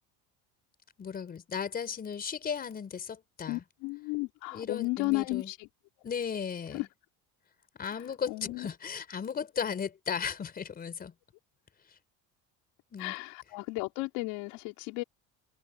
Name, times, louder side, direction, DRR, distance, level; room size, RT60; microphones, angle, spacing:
voice 1, 1.0-3.6 4.5-5.5 6.0-6.9 7.8-11.1 12.9-13.1, left 7 dB, 25° left, 4.4 m, -36 dB
voice 2, 3.5-5.7 6.7-6.9 7.9-8.7 13.0-15.0, left 24 dB, 75° left, 4.7 m, -34 dB
cardioid pair, 155°, 36 cm